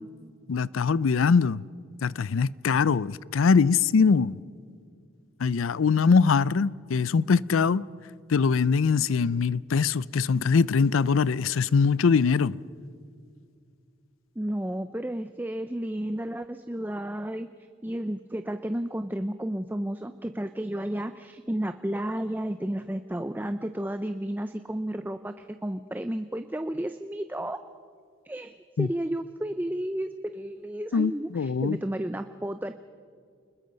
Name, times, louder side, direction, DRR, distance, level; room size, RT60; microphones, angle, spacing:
voice 1, 0.5-1.6 2.0-4.4 5.4-7.9 8.3-12.6 28.8-28.9 30.9-31.8, left 5 dB, 85° left, 0.5 m, -22 dB
voice 2, 14.4-17.5 17.8-27.6 28.3-32.7, right 1 dB, 10° right, 0.4 m, -32 dB
29.5 x 21.0 x 5.3 m
head